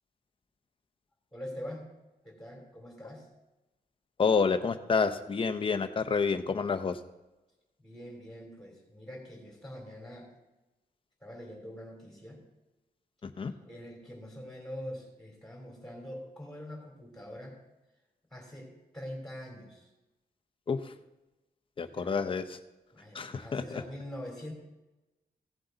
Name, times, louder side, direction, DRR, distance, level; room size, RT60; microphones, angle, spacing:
voice 1, 1.3-1.9 2.2-3.3 7.8-10.3 11.2-12.4 13.7-17.6 18.3-19.9 21.9-22.3 22.9-24.5, equal, 5° left, -1 dB, 3.4 m, -44 dB
voice 2, 4.2-7.0 13.2-13.5 20.7-20.9 21.8-22.6 23.1-23.8, left 5 dB, 30° left, 8 dB, 0.7 m, -29 dB
16.0 x 7.8 x 4.0 m, 1.0 s
wide cardioid pair, 155°, 17 cm